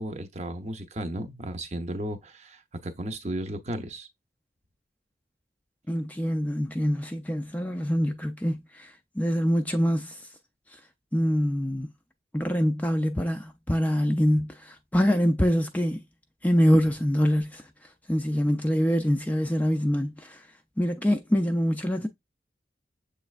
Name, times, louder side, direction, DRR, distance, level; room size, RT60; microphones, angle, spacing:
voice 1, 0.0-4.1, right 1 dB, 40° right, 0.7 m, -34 dB
voice 2, 5.9-10.2 11.1-11.9 12.3-16.0 16.4-17.6 18.1-20.4 20.8-22.1, equal, 10° left, 0.4 m, -25 dB
6.9 x 3.2 x 2.4 m
head